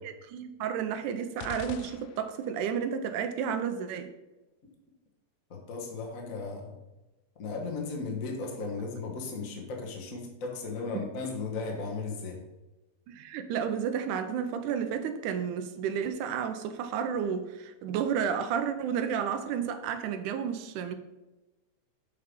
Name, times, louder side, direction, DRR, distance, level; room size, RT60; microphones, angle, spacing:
voice 1, 0.0-4.1 13.1-20.9, right 7 dB, 90° right, 9 dB, 2.1 m, -31 dB
sound 1, 1.4-2.7, left 9 dB, 80° left, 1.9 m, -44 dB
voice 2, 5.5-6.7 7.4-12.4, left 4 dB, 55° left, 0 dB, 0.9 m, -36 dB
6.7 x 5.7 x 5.2 m, 1.1 s
omnidirectional pair, 3.6 m